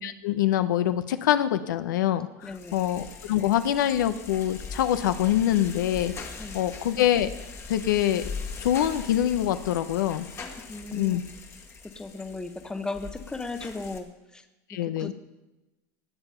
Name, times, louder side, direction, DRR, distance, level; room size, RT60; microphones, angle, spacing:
voice 1, 0.0-6.1 6.5-7.3 7.7-8.2 8.6-10.2 10.9-11.2 14.7-15.1, left 11 dB, 90° left, 11 dB, 0.8 m, -25 dB
sound 1, 2.4-14.0, left 5 dB, 25° left, 1.5 m, -41 dB
voice 2, 2.4-2.8 6.4-6.6 10.7-11.2 11.9-14.4 14.8-15.1, left 3 dB, 5° left, 9 dB, 0.9 m, -36 dB
19.0 x 7.0 x 5.6 m, 1.0 s
supercardioid pair, 125°, 10 cm